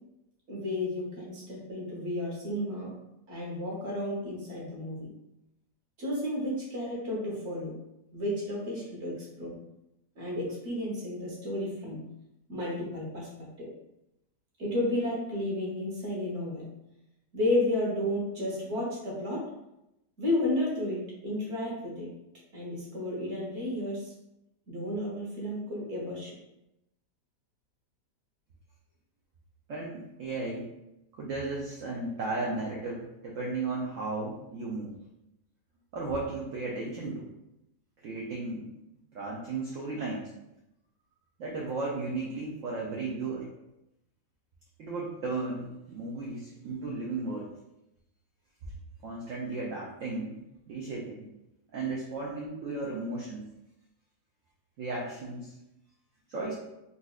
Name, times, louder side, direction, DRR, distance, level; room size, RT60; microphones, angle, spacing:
voice 1, 0.5-2.9 3.3-5.1 6.0-7.8 8.1-9.5 10.2-12.0 12.5-13.3 13.6-13.7 14.6-16.6 17.3-19.4 20.2-22.1 22.5-24.1 24.7-26.3, left 1 dB, 45° right, -5 dB, 1.2 m, -32 dB
voice 2, 29.7-30.7 31.1-35.0 35.9-37.3 38.0-38.7 39.1-40.3 41.4-43.5 44.8-47.5 49.0-51.3 51.7-53.4 54.8-55.5 56.3-56.5, right 3 dB, 65° right, -3 dB, 0.8 m, -35 dB
4.1 x 2.5 x 2.3 m, 0.88 s
omnidirectional pair, 1.8 m